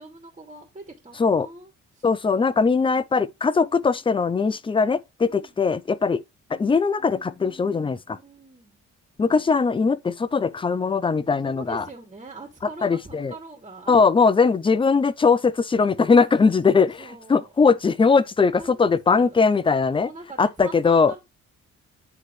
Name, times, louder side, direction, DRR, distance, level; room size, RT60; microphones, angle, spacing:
voice 1, 0.0-2.1 5.2-5.6 8.1-8.8 11.4-14.0 14.4-14.5 16.4-17.5 18.6-19.4 20.0-21.2, right 3 dB, 20° right, 2.6 m, -43 dB
voice 2, 2.0-6.2 6.5-8.2 9.2-11.8 12.8-13.3 13.9-17.0 17.3-20.1 20.4-21.1, left 5 dB, 15° left, 0.5 m, -20 dB
9.7 x 4.0 x 3.2 m
cardioid pair, 90°, 30 cm